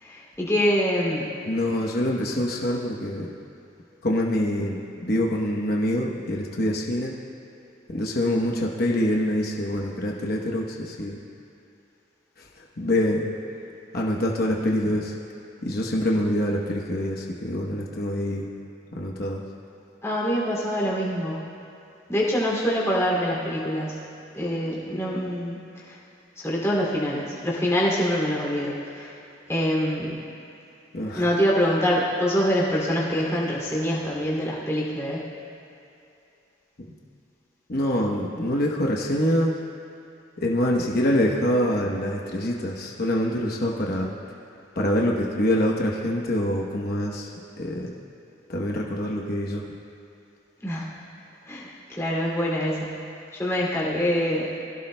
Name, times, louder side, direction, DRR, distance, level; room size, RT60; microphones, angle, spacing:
voice 1, 0.0-1.3 20.0-21.4 22.1-24.0 24.3-25.6 25.9-26.0 26.4-29.1 29.5-30.2 31.1-35.2 50.6-50.9 51.5-53.0 53.3-54.5, equal, 15° left, -5 dB, 2.6 m, -25 dB
voice 2, 1.5-3.3 4.0-7.2 7.9-11.2 12.4-13.3 13.9-15.1 15.6-18.5 18.9-19.4 30.9-31.3 37.7-39.5 40.4-44.1 44.8-47.3 47.6-47.9 48.5-49.6, left 1 dB, 50° left, -2 dB, 1.0 m, -25 dB
22.0 x 16.0 x 2.2 m, 2.7 s
head